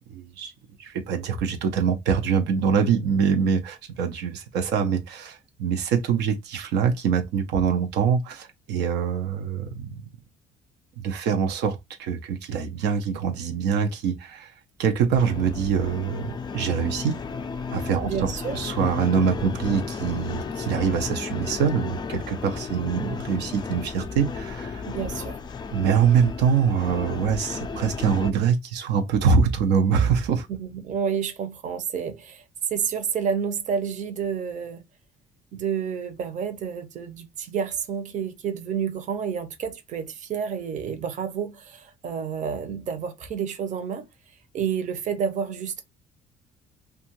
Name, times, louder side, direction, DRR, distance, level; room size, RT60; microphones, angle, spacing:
voice 1, 0.1-0.5 0.8-10.0 11.0-17.2 17.7-24.8 25.7-30.5, right 6 dB, 85° right, 0.6 m, -24 dB
sound 1, 15.2-28.3, left 5 dB, 25° left, 0.3 m, -33 dB
voice 2, 18.0-18.6 24.8-25.4 30.5-32.4 32.7-34.8 35.5-44.1 44.5-45.8, right 7 dB, 45° right, 0.7 m, -29 dB
2.6 x 2.4 x 2.8 m
cardioid pair, 110°, 17 cm